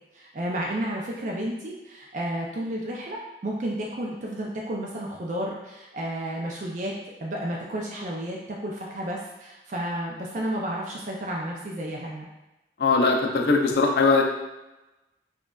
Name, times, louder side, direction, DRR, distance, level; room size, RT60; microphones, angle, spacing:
voice 1, 0.1-6.9 7.2-12.3, right 1 dB, 45° right, -2 dB, 0.4 m, -32 dB
voice 2, 12.8-14.2, left 4 dB, 65° left, 1 dB, 0.4 m, -20 dB
5.1 x 2.3 x 2.3 m, 1.0 s
head